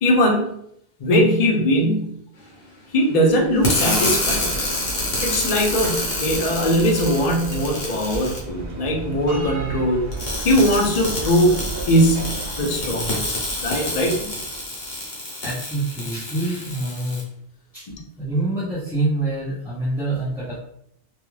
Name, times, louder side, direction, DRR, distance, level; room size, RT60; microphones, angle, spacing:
voice 1, 0.0-0.5 1.0-2.2 2.9-4.6 5.2-10.1 10.4-14.3 17.9-18.0, equal, 45° left, 1 dB, 0.5 m, -20 dB
Bell, 3.1-15.0, right 3 dB, 80° right, 0.8 m, -34 dB
sound 1, 3.6-8.4 10.1-17.2, left 1 dB, 65° left, 1.0 m, -28 dB
voice 2, 15.4-17.2 17.7-17.9 18.2-20.6, right 2 dB, ahead, -12 dB, 0.6 m, -26 dB
2.4 x 2.3 x 3.0 m, 0.73 s
omnidirectional pair, 1.1 m